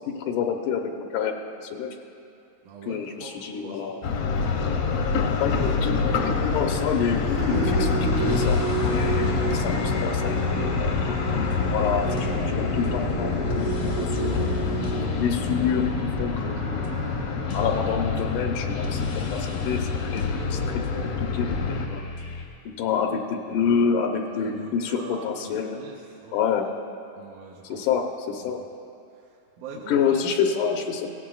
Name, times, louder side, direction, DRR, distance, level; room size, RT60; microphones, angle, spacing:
voice 1, 0.2-1.3 1.6-1.9 2.9-4.0 5.4-13.7 14.0-14.5 14.9-16.9 17.5-22.1 22.8-25.8 26.3-26.7 27.6-28.6 29.9-31.1, left 6 dB, 90° left, 3 dB, 2.3 m, -28 dB
voice 2, 2.6-3.3 3.6-4.0 24.3-26.4 27.2-28.0 28.4-28.5 29.1-30.2, right 5 dB, 80° right, -2 dB, 2.4 m, -43 dB
sound 1, 4.0-21.9, left 5 dB, 70° left, 1.5 m, -27 dB
sound 2, 7.4-17.9, right 2 dB, 55° right, 0.8 m, -31 dB
sound 3, 8.1-22.4, left 2 dB, 55° left, 1.1 m, -38 dB
18.0 x 15.0 x 2.3 m, 2.6 s
omnidirectional pair, 3.5 m